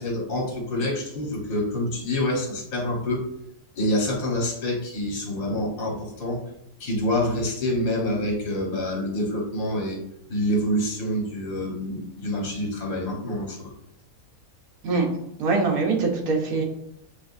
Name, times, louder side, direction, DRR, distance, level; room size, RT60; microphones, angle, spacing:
voice 1, 0.0-3.3 3.7-6.4 6.8-10.0 10.3-13.7, left 1 dB, 65° left, -2 dB, 1.6 m, -27 dB
voice 2, 15.4-16.6, right 4 dB, 75° right, 0 dB, 1.4 m, -23 dB
6.8 x 2.4 x 2.5 m, 0.78 s
omnidirectional pair, 1.5 m